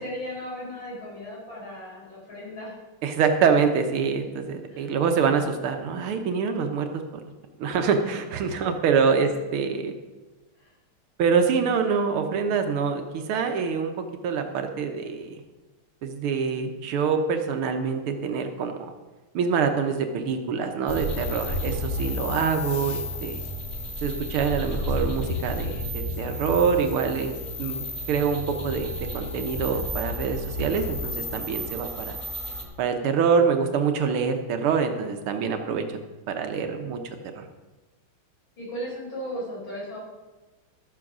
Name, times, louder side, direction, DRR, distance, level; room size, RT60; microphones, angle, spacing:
voice 1, 0.0-2.8 4.7-4.9 9.0-9.1 10.6-10.7 38.6-40.0, equal, 60° left, -5 dB, 5.3 m, -36 dB
voice 2, 3.0-7.0 7.6-9.9 11.2-15.4 16.0-18.9 19.3-23.4 24.0-32.2 32.8-36.0 36.3-37.0 37.3-37.4, right 6 dB, 80° right, 6 dB, 1.8 m, -25 dB
sound 1, 20.9-32.6, left 1 dB, 25° left, 1.6 m, -32 dB
12.5 x 7.5 x 6.1 m, 1.2 s
omnidirectional pair, 2.4 m